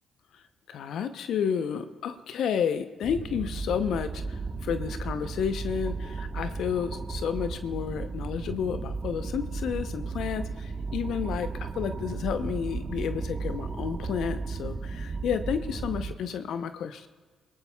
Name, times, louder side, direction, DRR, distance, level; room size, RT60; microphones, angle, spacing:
voice 1, 0.3-11.5 11.7-17.1, left 7 dB, 65° left, 10 dB, 0.7 m, -31 dB
sound 1, 3.0-16.1, right 4 dB, 40° right, 1.1 m, -34 dB
26.0 x 17.0 x 2.3 m, 1.4 s
hypercardioid pair, 45°, 0 cm